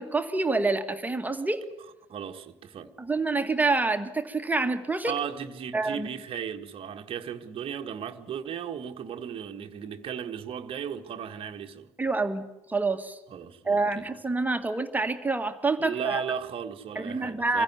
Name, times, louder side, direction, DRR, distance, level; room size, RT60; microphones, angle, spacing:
voice 1, 0.0-1.6 3.0-5.1 5.7-6.1 12.0-13.2 13.7-16.2 17.0-17.6, right 3 dB, 10° right, 1.9 m, -27 dB
voice 2, 2.1-2.9 5.0-11.9 13.3-14.0 15.8-17.6, right 8 dB, 40° right, 1.4 m, -36 dB
25.0 x 16.0 x 9.4 m
figure-of-eight pair, 60°, 15 cm